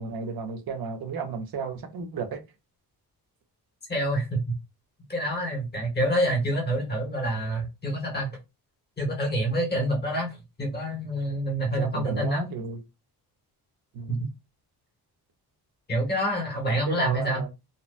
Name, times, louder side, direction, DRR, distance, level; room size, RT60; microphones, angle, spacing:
voice 1, 0.0-2.4 11.8-12.8 13.9-14.2 16.6-17.5, right 5 dB, 65° right, 0.7 m, -33 dB
voice 2, 3.9-4.5 5.1-8.4 9.0-12.5 14.1-14.2 15.9-17.4, right 1 dB, 25° left, 1.1 m, -27 dB
2.7 x 2.1 x 2.4 m
wide cardioid pair, 145°, 39 cm